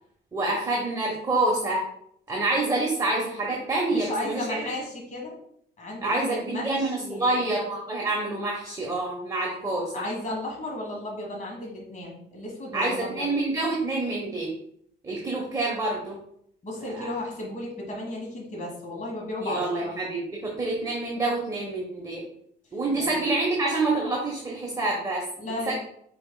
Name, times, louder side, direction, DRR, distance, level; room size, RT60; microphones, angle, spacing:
voice 1, 0.3-1.8 2.3-4.6 6.0-10.0 12.7-14.5 15.0-16.2 16.9-17.1 19.4-22.2 22.7-25.2 25.7-25.8, right 2 dB, 15° right, -2 dB, 1.1 m, -27 dB
voice 2, 3.9-5.4 5.8-7.5 9.9-13.3 16.6-19.9 23.0-23.1 25.4-25.7, left 1 dB, 40° left, -2 dB, 1.6 m, -34 dB
4.7 x 4.7 x 2.3 m, 0.69 s
cardioid pair, 90°, 20 cm